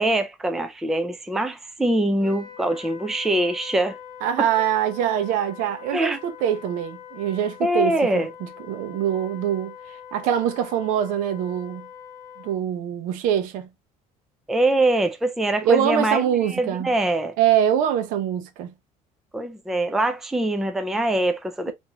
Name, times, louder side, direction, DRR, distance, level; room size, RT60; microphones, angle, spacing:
voice 1, 0.0-4.0 4.4-4.5 5.9-6.2 7.6-8.3 14.5-17.4 19.3-21.7, right 1 dB, ahead, 0.3 m, -23 dB
Wind instrument woodwind instrument, 2.2-12.6, left 9 dB, 30° left, 0.7 m, -43 dB
voice 2, 4.2-8.3 8.7-9.7 10.1-11.9 12.4-13.7 15.6-16.9 17.4-18.7, right 10 dB, 75° right, 0.7 m, -24 dB
3.4 x 2.6 x 2.8 m
cardioid pair, 160°, 14 cm